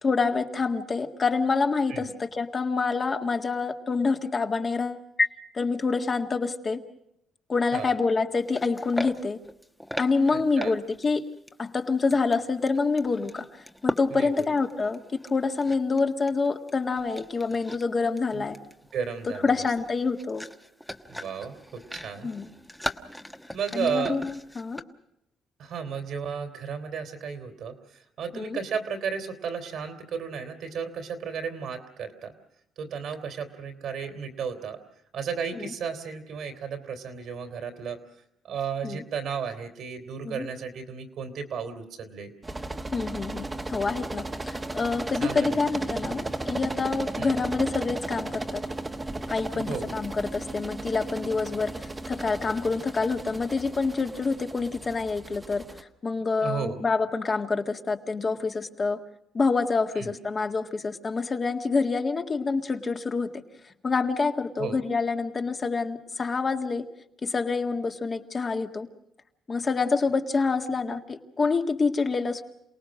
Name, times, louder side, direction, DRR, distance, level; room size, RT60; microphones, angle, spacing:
voice 1, 0.0-5.3 5.6-6.8 7.5-9.4 10.0-11.2 11.6-13.4 13.8-15.0 15.3-18.6 19.4-20.4 22.2-22.5 23.7-24.8 28.3-28.6 38.8-39.0 40.2-40.5 42.9-48.6 49.3-55.6 56.0-59.0 59.3-63.3 63.8-66.9 67.2-68.9 69.5-72.4, left 4 dB, 35° left, 5 dB, 1.9 m, -27 dB
sound 1, 8.3-11.2 11.5-11.6 12.1-16.0 16.3-16.7 17.0-17.8 18.2-24.8, equal, 5° left, 1.2 m, -38 dB
voice 2, 10.3-10.7 14.1-14.5 18.3-18.5 18.9-19.6 21.1-22.3 23.5-24.2 25.6-32.3 32.8-34.8 35.1-38.0 38.4-42.3 45.2-45.6 47.2-47.4 49.5-49.9 56.4-56.8 59.9-60.1 64.6-64.8, right 6 dB, 70° right, 7 dB, 3.1 m, -34 dB
sound 2, 42.4-55.8, right 2 dB, 20° right, 1.4 m, -35 dB
28.0 x 18.5 x 6.4 m, 0.79 s
cardioid pair, 90°, 0 cm